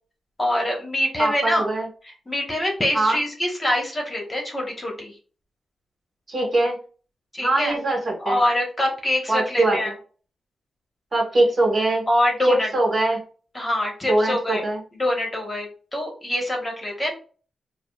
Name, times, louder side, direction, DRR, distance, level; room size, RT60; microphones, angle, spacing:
voice 1, 0.4-1.7 2.0-5.2 7.3-7.7 8.2-9.9 12.1-12.7 13.5-14.6 14.9-17.1, left 1 dB, 25° left, 0 dB, 1.1 m, -24 dB
voice 2, 1.2-1.9 2.9-3.2 6.3-6.7 7.4-8.4 9.3-9.8 11.1-12.0 12.4-13.2 14.1-14.8, right 2 dB, 40° right, -2 dB, 1.5 m, -22 dB
4.8 x 2.1 x 2.3 m, 0.39 s
wide cardioid pair, 105°, 0 cm